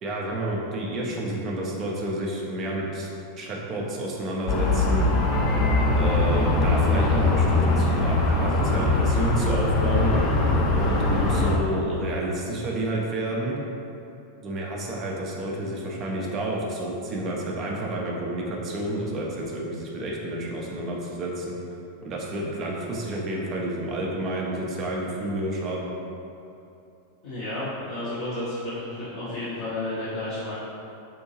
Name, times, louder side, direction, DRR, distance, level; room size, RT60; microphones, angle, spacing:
voice 1, 0.0-3.1 3.4-5.1 6.0-10.1 10.7-13.6 14.4-21.6 22.0-25.9, right 1 dB, 30° right, -3 dB, 0.6 m, -30 dB
sound 1, 4.5-11.6, left 2 dB, 35° left, 0.5 m, -21 dB
voice 2, 27.2-30.5, left 1 dB, 55° left, -11 dB, 1.0 m, -32 dB
4.5 x 2.6 x 2.8 m, 2.7 s
figure-of-eight pair, 90°, 0 cm